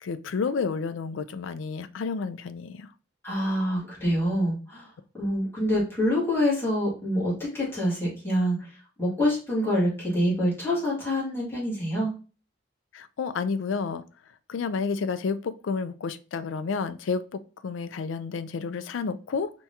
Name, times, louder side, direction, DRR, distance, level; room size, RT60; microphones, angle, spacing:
voice 1, 0.0-2.9 12.9-14.0 14.5-19.5, left 5 dB, 80° left, 0.4 m, -30 dB
voice 2, 3.2-4.9 5.1-8.7 9.0-12.1, equal, 10° left, 2.2 m, -26 dB
4.5 x 3.5 x 2.8 m
head